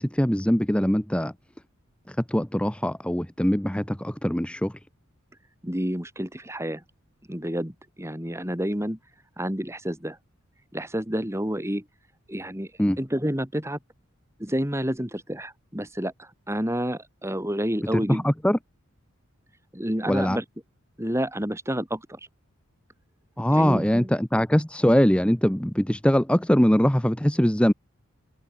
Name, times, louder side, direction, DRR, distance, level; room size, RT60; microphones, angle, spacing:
voice 1, 0.0-1.3 2.1-4.7 12.8-13.0 17.9-18.6 20.1-20.4 23.4-27.7, equal, 5° left, 0.8 m, -22 dB
voice 2, 5.6-6.8 7.3-9.0 9.4-10.2 10.7-11.8 12.3-12.7 13.0-13.8 14.4-18.3 19.7-20.4 21.0-22.2 23.5-24.1, equal, 10° right, 3.7 m, -29 dB
head